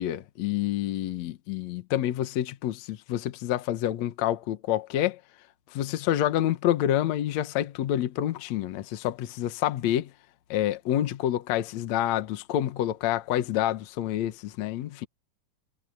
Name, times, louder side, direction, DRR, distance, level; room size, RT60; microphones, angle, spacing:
voice 1, 0.0-5.2 5.7-10.1 10.5-15.1, left 12 dB, 60° left, 2.1 m, -28 dB
omnidirectional pair, 4.2 m